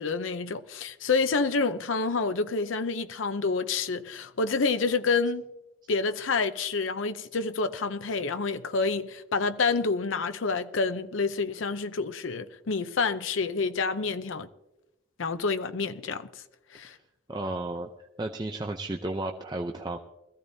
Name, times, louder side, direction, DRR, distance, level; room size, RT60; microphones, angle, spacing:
voice 1, 0.0-5.5 5.9-14.5 15.2-16.3 16.7-16.9, left 4 dB, 85° left, 0.7 m, -28 dB
voice 2, 17.3-20.0, right 2 dB, 20° right, 0.5 m, -33 dB
21.5 x 14.5 x 2.7 m
head